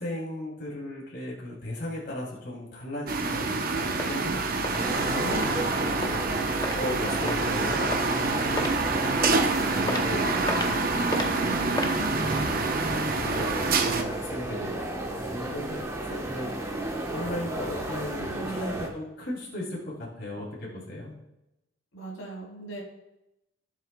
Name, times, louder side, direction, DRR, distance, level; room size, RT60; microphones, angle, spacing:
voice 1, 0.0-9.3 9.5-21.1, left 1 dB, 55° left, -5 dB, 3.1 m, -37 dB
sound 1, 3.1-14.0, right 3 dB, 45° right, 0.7 m, -27 dB
sound 2, 4.0-4.2 4.6-4.8 5.3-5.5 6.0-6.1 6.6-6.8 7.3-7.5 7.9-8.2 8.6-8.7 9.2-9.4 9.9-10.0 10.5-10.7 11.1-11.3 11.7-12.0, left 1 dB, 20° left, 0.7 m, -31 dB
voice 2, 4.1-5.8 11.1-11.6 18.2-18.7 21.9-22.8, right 2 dB, 90° left, -3 dB, 3.6 m, -40 dB
sound 3, 4.8-18.9, right 1 dB, 15° right, 1.1 m, -33 dB
17.0 x 7.4 x 2.3 m, 0.91 s
head